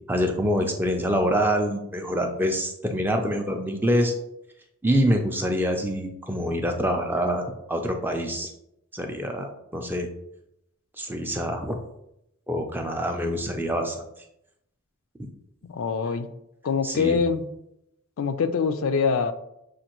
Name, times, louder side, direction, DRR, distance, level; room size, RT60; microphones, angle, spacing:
voice 1, 0.1-4.1 4.8-8.5 8.9-10.1 11.0-11.8 12.5-14.0 16.8-17.2, equal, 10° right, 4 dB, 0.4 m, -25 dB
voice 2, 15.7-16.3 16.6-17.4 18.2-19.3, left 5 dB, 65° left, 10 dB, 0.4 m, -24 dB
6.4 x 2.5 x 2.9 m, 0.80 s
head